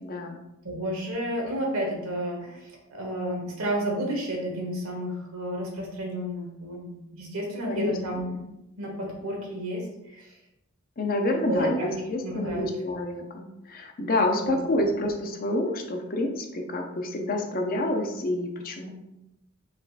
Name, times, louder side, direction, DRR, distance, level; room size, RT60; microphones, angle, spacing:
voice 1, 0.0-0.4 7.7-8.3 11.0-18.9, left 1 dB, 45° left, 3 dB, 0.6 m, -28 dB
voice 2, 0.6-8.4 8.8-10.4 11.5-11.9 12.2-12.7 14.4-14.6, right 1 dB, 85° right, -1 dB, 1.3 m, -31 dB
4.4 x 3.6 x 2.5 m, 0.89 s
head